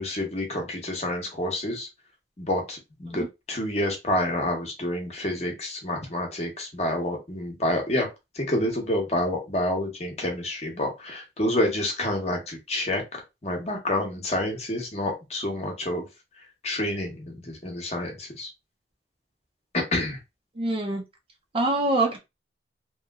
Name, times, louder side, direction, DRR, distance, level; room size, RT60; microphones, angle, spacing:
voice 1, 0.0-1.9 2.4-8.1 8.3-16.0 16.6-18.5 19.7-20.2, left 1 dB, 35° left, 2 dB, 0.8 m, -28 dB
voice 2, 20.6-21.0 21.5-22.2, right 2 dB, 30° right, 3 dB, 0.5 m, -24 dB
3.0 x 2.8 x 2.3 m, 0.23 s
head